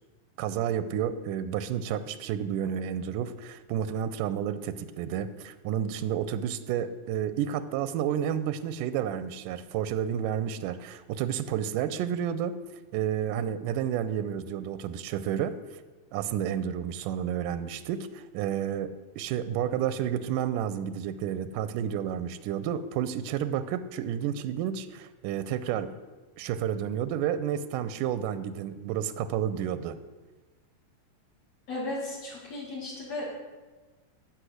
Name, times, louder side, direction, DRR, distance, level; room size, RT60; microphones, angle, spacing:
voice 1, 0.4-12.6 12.9-15.6 16.1-25.9 26.4-30.0, right 9 dB, 90° right, 13 dB, 2.2 m, -31 dB
voice 2, 31.7-33.3, left 2 dB, 60° left, -4 dB, 3.0 m, -35 dB
14.5 x 6.5 x 6.5 m, 1.2 s
omnidirectional pair, 3.7 m